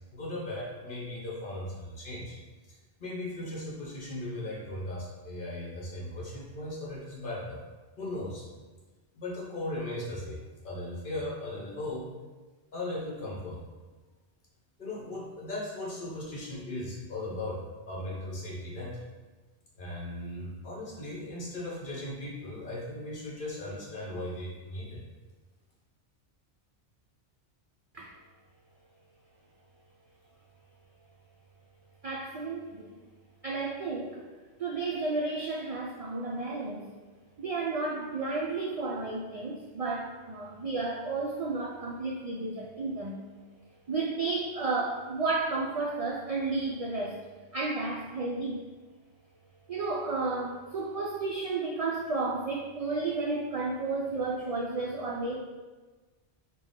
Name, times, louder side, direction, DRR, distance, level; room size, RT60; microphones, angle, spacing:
voice 1, 0.1-2.4 2.7-7.6 8.0-8.4 9.1-12.0 12.7-13.6 14.8-19.0 19.7-25.0, left 1 dB, 50° left, -4 dB, 1.1 m, -37 dB
voice 2, 32.0-33.0 33.4-34.2 34.6-36.9 37.4-43.2 43.9-47.2 47.5-48.6 49.7-55.4, right 3 dB, 65° right, -3 dB, 0.3 m, -32 dB
4.5 x 2.3 x 3.6 m, 1.3 s
omnidirectional pair, 1.1 m